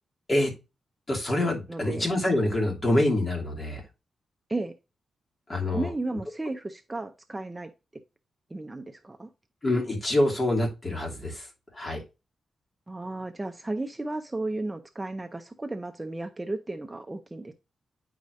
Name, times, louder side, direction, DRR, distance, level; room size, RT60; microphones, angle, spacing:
voice 1, 1.1-3.8 5.5-5.9 9.6-11.5 11.7-12.0, left 1 dB, 30° left, 2.8 m, -26 dB
voice 2, 1.7-2.1 4.5-4.7 5.7-7.7 8.5-9.3 12.9-17.5, right 2 dB, 15° right, 0.6 m, -34 dB
9.3 x 4.9 x 2.6 m
wide cardioid pair, 120°, 0 cm